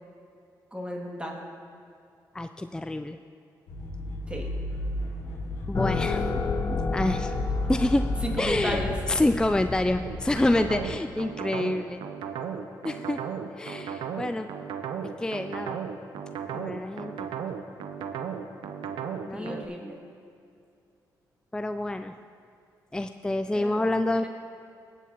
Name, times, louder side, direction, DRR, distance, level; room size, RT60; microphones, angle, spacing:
voice 1, 0.7-1.4 4.3-4.5 6.1-6.4 6.7-6.8 8.2-8.9 19.3-20.0 23.5-23.9, equal, 15° right, -1 dB, 2.3 m, -34 dB
voice 2, 2.3-3.2 5.7-6.3 6.9-7.4 7.7-8.1 8.4-8.8 9.1-12.0 12.8-13.2 13.6-14.5 15.2-15.8 16.5-17.1 19.3-19.7 21.5-22.1 22.9-24.4, left 1 dB, 10° left, 8 dB, 0.4 m, -27 dB
sound 1, 3.7-9.0, left 1 dB, 90° left, 1.6 m, -33 dB
sound 2, 5.7-11.0, left 4 dB, 40° left, 0.8 m, -32 dB
sound 3, 10.0-19.7, right 7 dB, 80° right, 0.6 m, -35 dB
18.0 x 8.1 x 2.9 m, 2.4 s
supercardioid pair, 55°, 8 cm